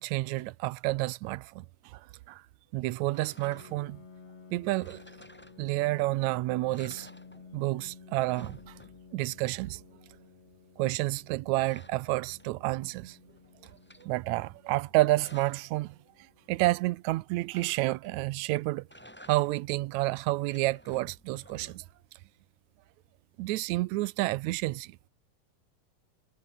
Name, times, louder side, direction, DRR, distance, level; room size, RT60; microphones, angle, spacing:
voice 1, 0.0-1.6 1.9-2.0 2.3-2.4 2.7-4.0 4.5-5.0 5.6-7.1 7.5-8.7 9.1-9.8 10.8-13.2 14.0-15.9 16.5-18.8 19.3-21.8 23.4-25.1, right 19 dB, 85° right, 1.7 m, -29 dB
sound 1, 3.1-4.0 4.7-6.0 6.3-6.4 6.7-7.8 8.0-9.3 11.0-12.8 13.2-14.1 14.8-15.7 17.5-18.3 18.8-19.8 20.3-22.1, equal, 5° left, 5.6 m, -54 dB
Piano, 3.4-18.8, left 5 dB, 45° left, 4.5 m, -54 dB
omnidirectional pair, 3.9 m